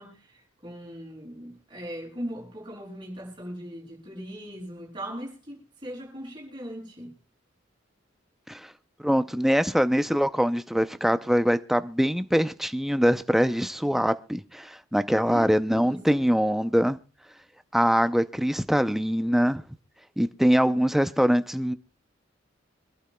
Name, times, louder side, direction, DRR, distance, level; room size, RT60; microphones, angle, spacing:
voice 1, 0.0-7.1 15.3-16.1, equal, 25° right, 6.5 m, -39 dB
voice 2, 9.0-17.0 17.7-19.6 20.2-21.7, equal, ahead, 0.5 m, -23 dB
26.0 x 11.5 x 2.2 m
head